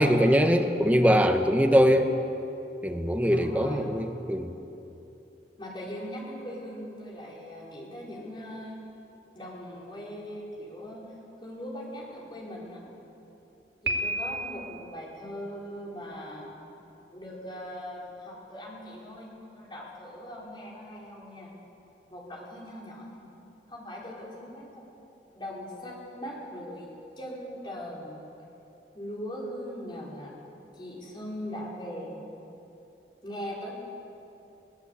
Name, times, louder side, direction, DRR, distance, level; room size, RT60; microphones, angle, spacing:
voice 1, 0.0-2.1 2.8-4.5, equal, 10° right, 5 dB, 1.2 m, -22 dB
voice 2, 3.3-3.8 5.6-8.8 9.3-11.0 11.4-12.8 13.8-16.5 17.1-21.5 22.1-23.3 23.7-24.9 25.3-26.9 27.2-28.2 28.9-30.3 30.7-32.2 33.2-33.8, equal, 25° left, -4 dB, 4.9 m, -40 dB
Piano, 13.8-14.8, right 1 dB, 65° right, 2.4 m, -31 dB
22.0 x 17.5 x 8.3 m, 2.9 s
head